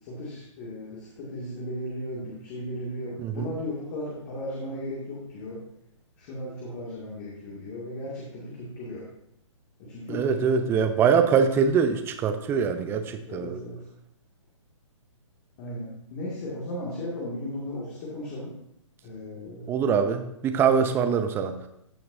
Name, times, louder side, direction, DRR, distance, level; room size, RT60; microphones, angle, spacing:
voice 1, 0.0-5.6 6.2-9.0 9.8-10.4 13.3-13.9 15.6-18.5 19.0-19.7, left 1 dB, 35° left, -5 dB, 2.2 m, -36 dB
voice 2, 3.2-3.5 10.1-13.6 19.7-21.6, right 6 dB, 15° right, 8 dB, 0.6 m, -23 dB
14.0 x 5.9 x 2.6 m, 0.77 s
figure-of-eight pair, 135°, 17 cm